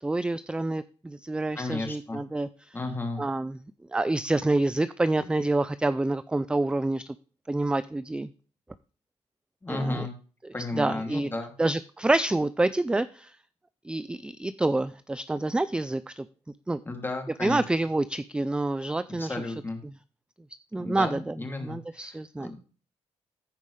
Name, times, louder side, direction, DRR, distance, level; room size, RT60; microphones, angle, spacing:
voice 1, 0.0-2.7 3.2-3.6 3.9-7.0 7.5-8.3 9.7-10.1 10.8-11.3 11.6-13.3 13.9-16.3 16.7-16.8 17.4-19.4 20.7-21.3 21.6-22.5, right 2 dB, 10° right, 15 dB, 0.4 m, -27 dB
voice 2, 1.5-2.2 2.7-3.2 9.6-10.1 10.5-11.5 16.9-17.6 19.2-19.8 20.8-22.5, left 2 dB, 20° left, 3 dB, 2.5 m, -33 dB
15.0 x 5.3 x 3.2 m, 0.39 s
cardioid pair, 110°, 11 cm